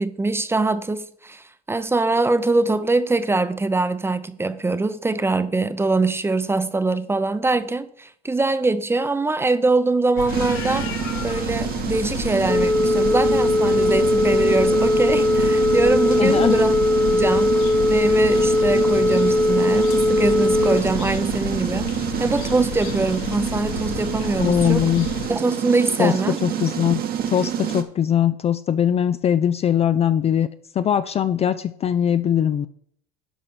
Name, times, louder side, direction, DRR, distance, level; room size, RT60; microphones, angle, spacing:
voice 1, 0.0-10.9 11.2-16.8 17.1-17.6 17.9-21.9 22.2-24.9 25.3-26.4, right 3 dB, 10° right, 0.7 m, -23 dB
sound 1, 10.2-25.3, left 8 dB, 70° left, 1.1 m, -33 dB
sound 2, 10.3-27.8, right 9 dB, 45° right, 1.2 m, -28 dB
Telephone, 12.5-20.8, left 1 dB, 10° left, 1.1 m, -19 dB
voice 2, 16.2-16.6 24.4-25.1 26.0-27.0 27.3-30.5 30.7-32.7, left 9 dB, 30° left, 0.4 m, -21 dB
11.0 x 5.1 x 6.0 m
supercardioid pair, 95°, 21 cm